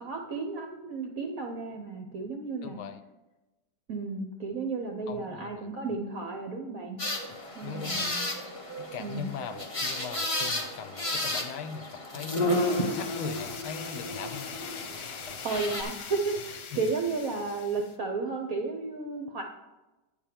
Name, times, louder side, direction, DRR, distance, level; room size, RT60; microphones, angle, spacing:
voice 1, 0.0-2.8 3.9-7.0 7.6-8.3 9.0-9.3 15.4-19.4, right 4 dB, 65° right, 3 dB, 0.8 m, -33 dB
voice 2, 2.6-3.0 5.1-5.7 7.6-8.1 8.8-12.6 12.9-14.5 16.7-16.8, left 7 dB, 75° left, 10 dB, 1.4 m, -40 dB
sound 1, 7.0-15.8, left 1 dB, 25° left, 0.7 m, -32 dB
sound 2, 12.5-18.0, left 6 dB, 60° left, 1.3 m, -42 dB
9.0 x 4.5 x 7.3 m, 1.1 s
omnidirectional pair, 2.3 m